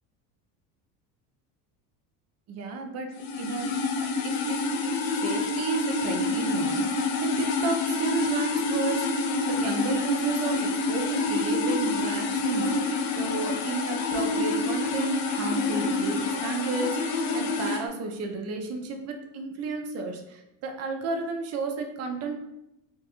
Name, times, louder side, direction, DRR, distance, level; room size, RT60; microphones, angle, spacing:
voice 1, 2.5-3.1 3.4-3.7 4.0-22.3, right 3 dB, 35° right, 4 dB, 0.5 m, -33 dB
sound 1, 3.1-17.8, left 3 dB, 60° left, 0.5 m, -27 dB
2.2 x 2.0 x 2.9 m, 0.87 s
supercardioid pair, 95°, 45 cm